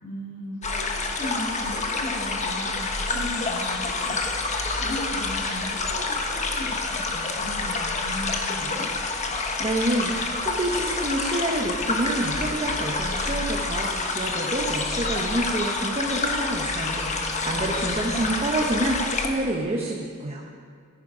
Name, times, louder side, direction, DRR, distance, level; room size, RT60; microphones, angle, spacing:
voice 1, 0.0-8.9 17.4-18.3, left 1 dB, 70° left, -3 dB, 3.7 m, -37 dB
sound 1, 0.6-19.3, left 3 dB, 35° left, 1.2 m, -28 dB
voice 2, 9.6-20.4, right 1 dB, 30° right, -1 dB, 1.1 m, -28 dB
14.5 x 10.5 x 5.0 m, 2.2 s
head